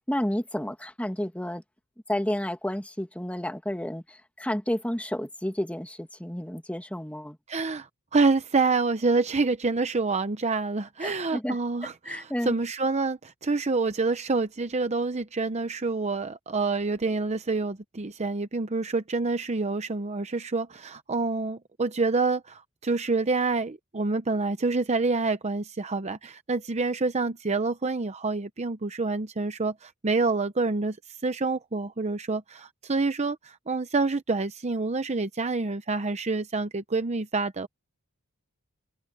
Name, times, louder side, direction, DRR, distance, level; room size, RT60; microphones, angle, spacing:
voice 1, 0.1-1.6 2.1-7.4 11.0-11.6 12.0-12.6, equal, 5° left, 2.0 m, -31 dB
voice 2, 7.5-31.0 31.2-37.7, right 3 dB, 30° right, 0.7 m, -27 dB
open air
head